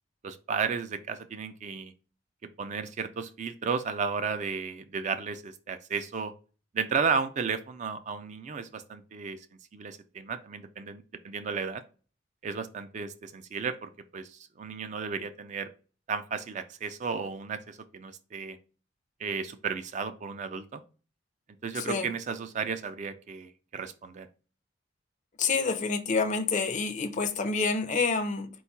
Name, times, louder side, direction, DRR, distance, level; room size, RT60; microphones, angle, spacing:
voice 1, 0.2-1.9 2.6-6.3 6.7-9.4 9.7-11.8 12.4-15.7 16.1-18.6 19.2-20.8 21.6-24.3, right 5 dB, 40° right, 0.3 m, -33 dB
voice 2, 21.8-22.1 25.4-28.5, left 4 dB, 40° left, 0.5 m, -28 dB
4.4 x 2.3 x 4.1 m
head